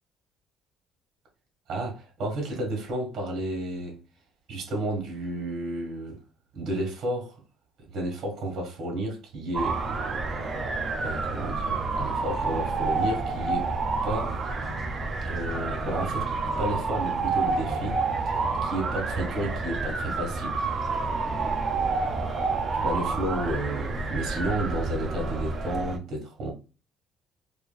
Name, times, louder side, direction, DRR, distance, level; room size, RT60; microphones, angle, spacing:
voice 1, 1.7-4.0 4.5-6.2 6.5-7.3 7.9-9.8 11.0-13.7 14.0-14.4 15.2-16.3 16.6-20.6 22.7-26.5, right 1 dB, 40° right, 1.6 m, -32 dB
sound 1, 9.5-26.0, right 3 dB, 25° right, 0.5 m, -29 dB
4.4 x 2.5 x 2.2 m
cardioid pair, 175°, 0 cm